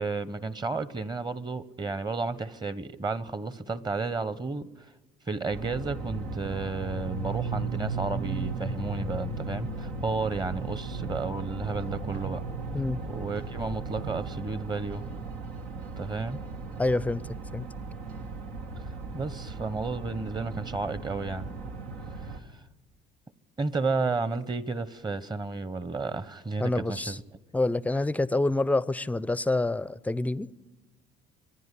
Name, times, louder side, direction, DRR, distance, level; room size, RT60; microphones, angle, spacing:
voice 1, 0.0-4.7 5.3-12.4 13.1-15.0 16.0-16.4 19.1-21.5 23.6-27.2, right 3 dB, 20° right, 1.0 m, -32 dB
sound 1, 5.5-22.4, right 3 dB, 85° right, 1.7 m, -36 dB
voice 2, 16.8-17.2 17.5-17.7 26.6-27.2 27.5-30.5, left 2 dB, 10° left, 0.6 m, -27 dB
26.0 x 10.5 x 10.0 m
supercardioid pair, 80°, 19 cm